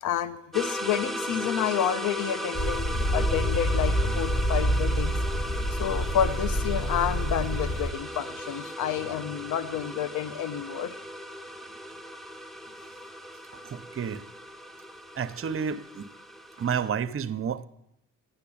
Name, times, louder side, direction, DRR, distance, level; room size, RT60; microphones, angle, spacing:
voice 1, 0.0-5.2 5.7-11.0, left 9 dB, 80° left, 14 dB, 0.9 m, -29 dB
sound 1, 0.5-16.9, equal, ahead, 0.8 m, -37 dB
sound 2, 2.5-7.9, equal, 35° left, 3.1 m, -27 dB
voice 2, 13.6-14.2 15.1-16.1 16.6-17.7, right 7 dB, 45° right, 11 dB, 0.9 m, -30 dB
13.0 x 10.0 x 8.7 m, 0.82 s
cardioid pair, 90°, 30 cm